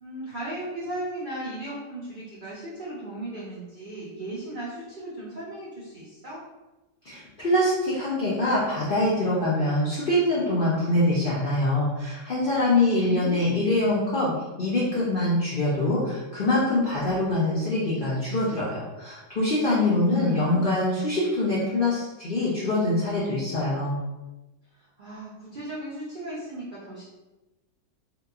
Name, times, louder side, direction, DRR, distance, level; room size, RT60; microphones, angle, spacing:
voice 1, 0.0-6.4 12.9-13.7 19.8-20.8 24.8-27.0, right 1 dB, 85° right, -8 dB, 0.4 m, -36 dB
voice 2, 7.0-14.3 14.6-24.0, left 1 dB, 85° left, -7 dB, 0.4 m, -24 dB
2.8 x 2.2 x 2.3 m, 1.1 s
omnidirectional pair, 1.7 m